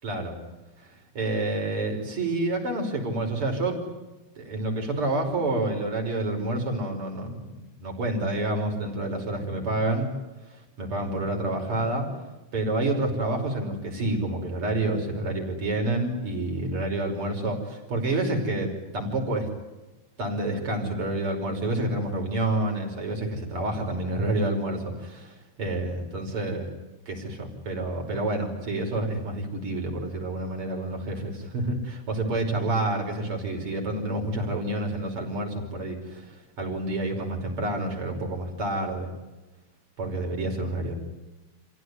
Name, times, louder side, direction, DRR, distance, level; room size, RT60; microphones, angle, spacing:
voice 1, 0.0-0.4 1.1-3.9 4.4-7.5 7.8-10.1 10.8-12.1 12.5-19.5 20.2-26.7 27.1-36.3 36.6-39.1 40.0-40.9, right 2 dB, 35° right, 2 dB, 6.0 m, -28 dB
29.0 x 16.5 x 9.7 m, 1.1 s
omnidirectional pair, 4.2 m